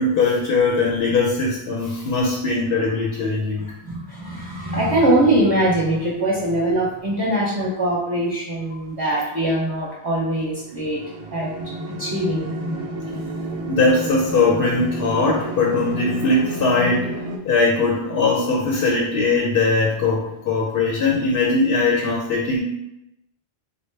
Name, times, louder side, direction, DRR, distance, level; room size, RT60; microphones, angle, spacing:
voice 1, 0.0-3.7 13.7-17.1 17.4-22.6, left 3 dB, 70° left, -1 dB, 0.8 m, -20 dB
voice 2, 3.6-11.0 11.3-11.5 11.9-12.5, right 1 dB, 25° right, -5 dB, 0.6 m, -22 dB
sound 1, 10.5-17.4, right 1 dB, 85° right, 0.9 m, -30 dB
3.9 x 2.1 x 3.2 m, 0.88 s
omnidirectional pair, 1.1 m